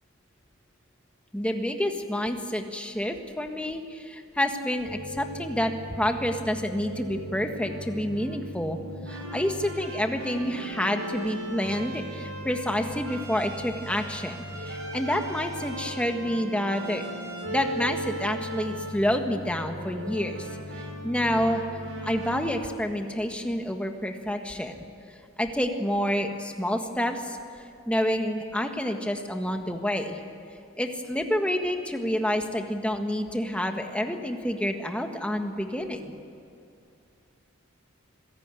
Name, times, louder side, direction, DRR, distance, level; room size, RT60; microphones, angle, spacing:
voice 1, 1.3-8.8 9.1-14.4 14.6-17.1 17.5-20.5 21.0-21.6 22.0-24.7 25.4-27.4 27.9-30.2 30.8-36.1, equal, 5° left, 4 dB, 1.6 m, -28 dB
sound 1, 4.8-22.6, right 1 dB, 85° right, 4.4 m, -38 dB
26.0 x 17.0 x 9.1 m, 2.5 s
head